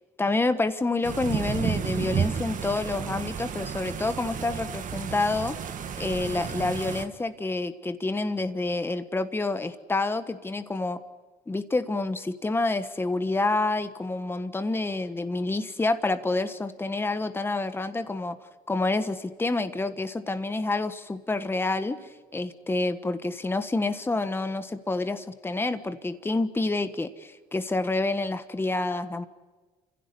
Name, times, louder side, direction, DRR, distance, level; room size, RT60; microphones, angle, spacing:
voice 1, 0.2-5.6 6.0-11.0 11.5-18.4 18.7-22.0 22.3-29.3, left 2 dB, 15° left, 10 dB, 1.4 m, -28 dB
sound 1, 1.0-7.1, right 7 dB, 50° right, 2.2 m, -32 dB
28.5 x 16.0 x 9.9 m, 1.3 s
cardioid pair, 110°, 17 cm